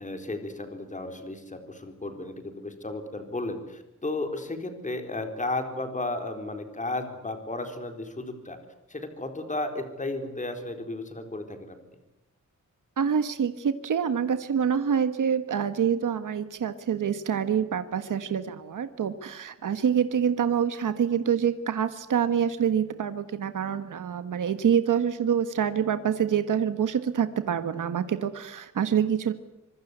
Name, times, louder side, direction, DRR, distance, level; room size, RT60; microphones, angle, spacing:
voice 1, 0.0-8.6 8.9-11.8, left 2 dB, 25° left, 6 dB, 4.1 m, -34 dB
voice 2, 13.0-29.3, right 8 dB, 75° right, 10 dB, 1.5 m, -26 dB
26.0 x 24.0 x 8.1 m, 0.93 s
wide cardioid pair, 150°, 31 cm